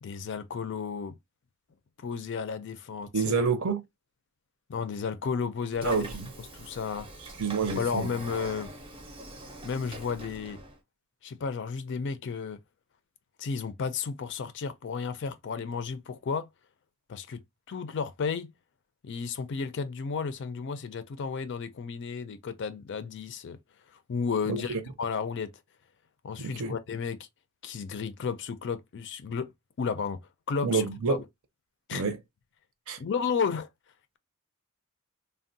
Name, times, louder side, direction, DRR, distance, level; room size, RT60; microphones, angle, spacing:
voice 1, 0.0-1.1 2.0-3.3 4.7-6.0 6.5-7.1 7.8-8.7 9.6-10.6 11.2-12.6 13.4-16.5 17.1-17.4 17.7-18.5 19.0-23.6 24.1-25.5 26.2-27.3 27.6-29.5 29.8-30.2 30.5-30.8 31.1-31.2 31.9-32.0 33.0-33.7, left 5 dB, 55° left, 0.4 m, -33 dB
voice 2, 3.1-3.8 5.8-6.3 7.4-8.1 24.5-24.8 26.4-26.7 30.6-31.2 31.9-32.2 32.9-33.0, right 5 dB, 65° right, 0.6 m, -28 dB
Train / Sliding door, 5.7-10.8, right 1 dB, 25° right, 0.6 m, -44 dB
3.4 x 2.2 x 2.6 m
head